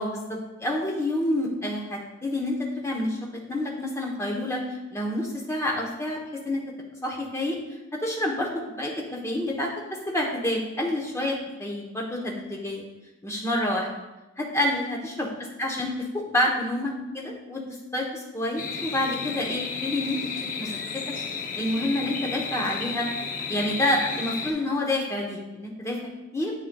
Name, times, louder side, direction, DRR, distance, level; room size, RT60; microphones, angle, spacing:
voice 1, 0.0-4.6 4.9-6.2 6.4-6.6 7.0-7.6 8.0-9.7 10.1-12.9 13.2-13.9 14.4-15.3 15.6-15.9 16.1-17.6 17.9-20.2 20.6-20.7 21.6-23.1 23.5-26.5, left 1 dB, 15° left, -1 dB, 0.8 m, -28 dB
sound 1, 18.6-24.5, left 5 dB, 40° left, 0.5 m, -33 dB
8.4 x 6.1 x 2.2 m, 1.0 s
head